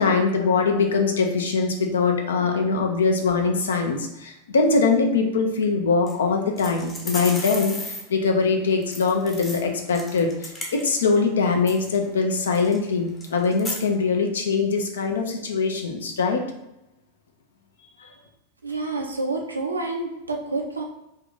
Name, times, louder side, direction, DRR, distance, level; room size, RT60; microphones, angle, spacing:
voice 1, 0.0-16.4 18.0-18.1, left 4 dB, 65° left, 3 dB, 0.6 m, -22 dB
sound 1, 6.1-6.2 6.6-8.0 8.8-11.2 11.5-12.0 12.5-12.8 13.2-13.8, left 1 dB, 15° left, 0.7 m, -35 dB
voice 2, 18.6-20.8, right 3 dB, 80° right, 1 dB, 0.6 m, -28 dB
2.6 x 2.5 x 3.8 m, 0.91 s
figure-of-eight pair, 90°, 0 cm